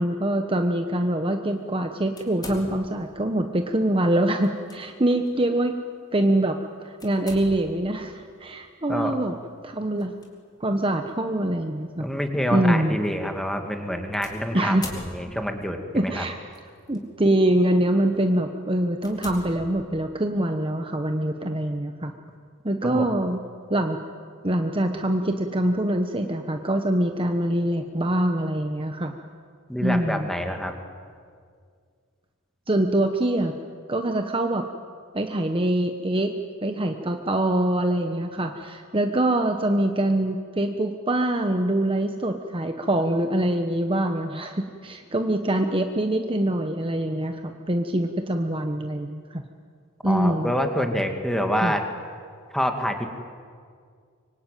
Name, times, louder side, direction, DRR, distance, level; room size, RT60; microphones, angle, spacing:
voice 1, 0.0-5.7 6.1-9.3 9.6-10.2 10.6-12.0 12.5-13.0 14.5-14.9 15.9-16.4 16.9-22.1 22.6-23.4 23.7-24.0 24.4-29.1 29.8-30.3 32.7-33.5 33.9-34.7 35.1-36.4 36.6-47.4 47.7-49.4 50.0-50.5 51.6-51.7, right 1 dB, 25° right, 5 dB, 1.1 m, -24 dB
sound 1, 2.2-3.1 4.4-4.8 5.2-5.4 7.0-7.9 10.0-10.3 11.1-11.2 14.2-15.6 16.5-17.0 17.5-17.7 18.3-18.4 19.0-20.2, left 2 dB, 20° left, 3.8 m, -41 dB
voice 2, 12.0-14.8 15.1-16.2 22.8-23.0 29.7-30.7 50.1-51.8 52.5-53.2, equal, ahead, 4 dB, 2.3 m, -26 dB
25.0 x 24.5 x 9.2 m, 2.1 s
head